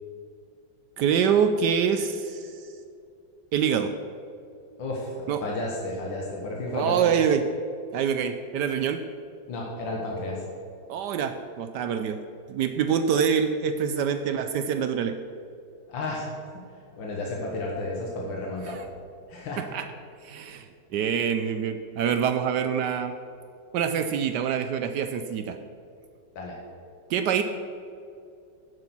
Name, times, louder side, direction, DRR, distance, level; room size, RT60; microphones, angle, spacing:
voice 1, 1.0-2.6 3.5-3.9 5.3-5.4 6.7-7.4 7.9-9.0 10.9-12.2 12.5-15.1 18.7-18.8 19.6-19.9 20.2-20.7 20.9-23.1 23.7-25.6 27.1-27.4, right 7 dB, 70° right, 8 dB, 1.1 m, -25 dB
voice 2, 4.8-5.1 5.4-7.1 9.5-10.5 15.9-16.6 16.9-18.8 19.3-19.6 20.5-20.6 26.4-26.6, left 2 dB, 85° left, -2 dB, 2.1 m, -32 dB
9.8 x 8.0 x 6.0 m, 2.5 s
omnidirectional pair, 2.0 m